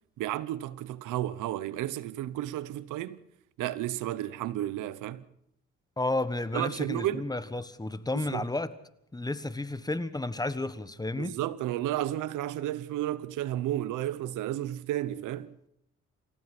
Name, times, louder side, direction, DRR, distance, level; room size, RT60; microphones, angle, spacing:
voice 1, 0.2-3.2 3.6-5.2 6.5-7.3 8.3-8.4 11.1-15.6, right 13 dB, 90° right, 1.0 m, -32 dB
voice 2, 6.0-8.7 9.1-11.4, left 2 dB, 15° left, 1.3 m, -32 dB
28.5 x 15.0 x 6.0 m
cardioid pair, 90°, 30 cm